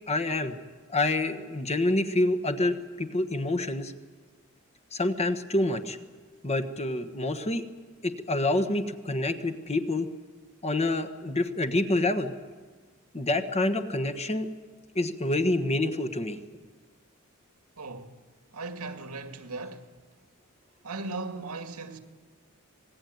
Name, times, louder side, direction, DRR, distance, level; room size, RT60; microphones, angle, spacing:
voice 1, 0.1-0.6 0.9-3.9 4.9-6.0 6.4-7.6 8.0-10.1 10.6-12.3 13.1-14.5 14.9-16.4, left 2 dB, 30° left, 1.3 m, -27 dB
voice 2, 17.8-18.2 18.5-19.9 20.8-22.0, right 3 dB, 90° right, 2.3 m, -37 dB
25.5 x 19.5 x 9.3 m
head